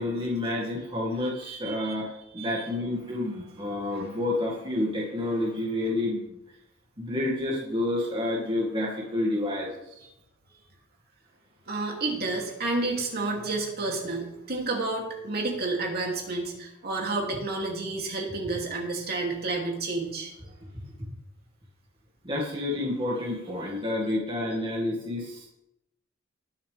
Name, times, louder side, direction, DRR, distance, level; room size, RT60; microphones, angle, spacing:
voice 1, 0.0-2.1 2.3-6.4 7.0-10.0 22.2-25.5, left 1 dB, 25° right, -3 dB, 2.1 m, -29 dB
voice 2, 1.2-2.0 2.4-2.7 3.9-4.1 11.7-20.3, right 3 dB, 50° right, -1 dB, 2.8 m, -30 dB
21.0 x 7.3 x 3.5 m, 0.86 s
head